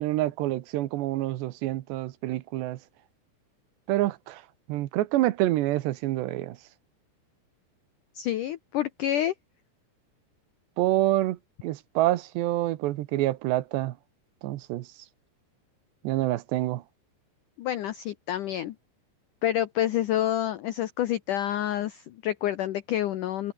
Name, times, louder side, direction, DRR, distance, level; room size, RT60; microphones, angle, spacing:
voice 1, 0.0-2.8 3.9-4.4 4.7-6.6 10.8-13.9 14.4-14.9 16.0-16.8, right 16 dB, 80° right, 3.2 m, -27 dB
voice 2, 8.2-9.3 17.6-18.8 19.4-23.5, left 12 dB, 85° left, 1.8 m, -28 dB
omnidirectional pair, 5.0 m